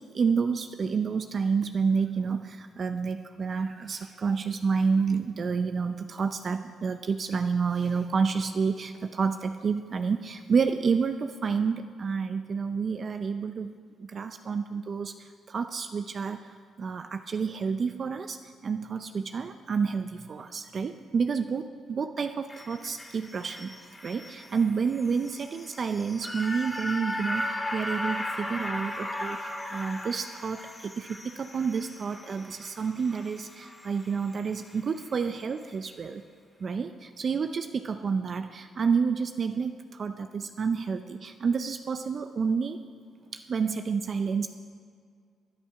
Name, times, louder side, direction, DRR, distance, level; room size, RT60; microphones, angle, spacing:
voice 1, 0.1-13.7 14.1-16.5 16.8-23.7 24.0-29.4 29.7-36.2 36.6-42.8 43.3-44.5, right 5 dB, 45° right, 8 dB, 0.6 m, -29 dB
sound 1, 22.5-34.8 35.2-35.3, left 1 dB, 10° left, 2.3 m, -37 dB
19.0 x 10.0 x 5.8 m, 2.1 s
cardioid pair, 90°, 0 cm